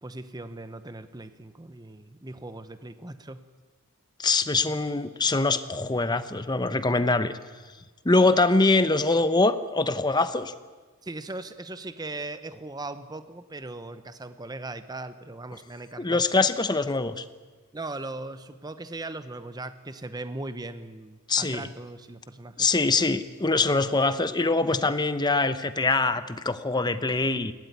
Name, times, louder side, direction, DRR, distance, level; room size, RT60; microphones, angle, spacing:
voice 1, 0.0-3.4 8.3-8.4 11.0-16.2 17.7-22.7 24.7-24.9, right 2 dB, 20° right, 11 dB, 0.9 m, -39 dB
voice 2, 4.2-7.3 8.0-10.5 16.0-17.2 21.3-21.7 22.6-27.5, left 3 dB, 20° left, 11 dB, 0.9 m, -23 dB
21.0 x 17.0 x 9.4 m, 1.4 s
head